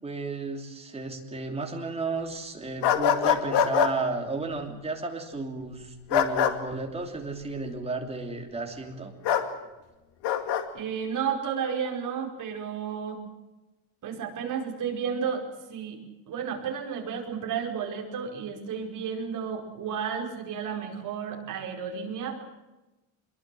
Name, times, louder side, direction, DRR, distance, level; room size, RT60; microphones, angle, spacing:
voice 1, 0.0-9.1, right 3 dB, 10° right, 3 dB, 3.0 m, -33 dB
sound 1, 2.8-3.9 6.1-6.5 9.2-9.5 10.2-10.6, left 8 dB, 55° left, 2.4 m, -23 dB
voice 2, 10.7-13.2 14.0-15.4 15.7-16.0 16.3-22.4, right 7 dB, 40° right, 1 dB, 5.2 m, -32 dB
25.0 x 22.5 x 7.7 m, 1.0 s
cardioid pair, 170°, 48 cm